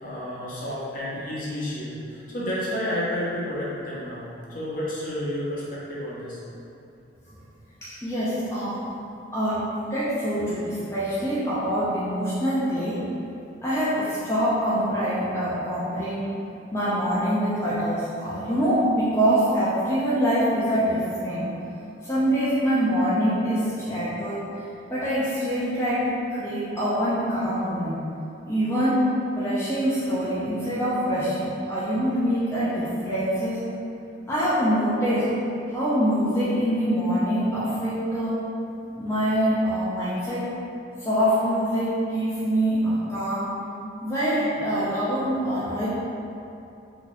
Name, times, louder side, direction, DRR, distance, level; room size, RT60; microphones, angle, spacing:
voice 1, 0.0-6.4, left 1 dB, 45° left, -7 dB, 0.7 m, -31 dB
voice 2, 7.8-8.8 9.3-13.0 13.6-16.3 16.7-21.5 22.0-24.6 24.9-28.0 28.5-29.0 29.4-33.6 34.3-35.3 35.7-38.4 38.9-40.5 41.0-43.5 44.0-45.9, equal, 15° left, -11 dB, 0.4 m, -25 dB
2.8 x 2.3 x 3.8 m, 2.8 s
head